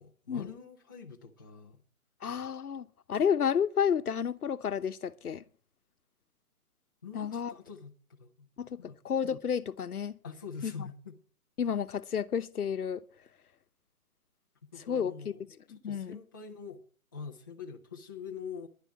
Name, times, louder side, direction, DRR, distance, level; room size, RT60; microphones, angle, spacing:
voice 1, 0.0-1.8 7.0-7.9 8.2-8.5 8.8-9.0 10.2-11.1 14.7-15.4 15.7-16.8 17.1-18.7, left 6 dB, 15° left, 0.6 m, -44 dB
voice 2, 2.2-5.4 7.1-7.5 8.6-10.2 10.6-10.9 11.6-13.0 14.9-15.3 15.7-16.2, left 7 dB, 80° left, 1.0 m, -31 dB
10.5 x 8.1 x 7.1 m
hypercardioid pair, 160°, 44 cm